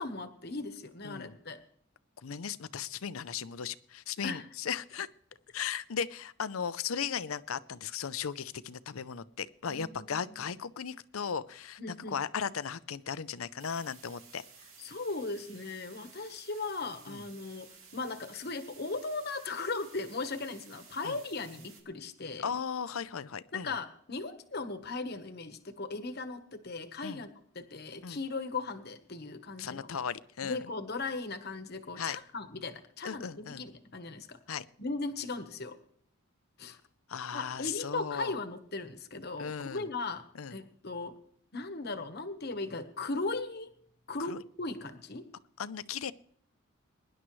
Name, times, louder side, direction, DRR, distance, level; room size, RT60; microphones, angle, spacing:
voice 1, 0.0-1.6 4.2-4.4 9.7-10.3 11.8-12.2 14.8-17.7 17.9-22.5 23.5-27.3 27.5-29.9 30.4-33.3 33.6-34.4 34.8-35.8 36.6-36.8 37.3-40.2 40.5-41.1 41.5-43.7 44.1-45.2, left 3 dB, 50° left, 10 dB, 1.2 m, -38 dB
voice 2, 1.0-1.4 2.2-5.1 5.5-14.4 17.1-17.2 21.0-21.2 22.4-23.7 27.0-27.2 28.0-28.2 29.6-30.6 32.0-32.2 33.0-33.6 34.5-34.6 36.7-36.8 37.1-38.3 39.4-39.9 40.3-40.6 44.2-44.4 45.6-46.1, left 7 dB, 85° left, 16 dB, 0.6 m, -37 dB
sound 1, 13.6-21.8, right 5 dB, 80° right, 2.7 m, -55 dB
22.5 x 11.0 x 3.2 m, 0.62 s
head